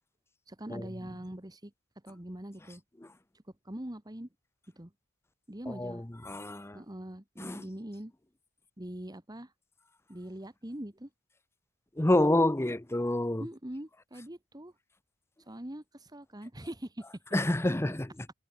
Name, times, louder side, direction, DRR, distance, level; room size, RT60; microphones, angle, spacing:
voice 1, 0.5-1.7 2.0-2.8 3.6-4.3 4.7-4.9 5.5-6.0 6.7-8.1 8.8-9.5 10.1-11.1 13.4-14.7 15.5-17.0 17.6-17.7, right 1 dB, 15° right, 1.4 m, -42 dB
voice 2, 5.7-6.8 7.4-7.6 12.0-13.5 17.3-18.1, left 1 dB, 10° left, 0.6 m, -28 dB
head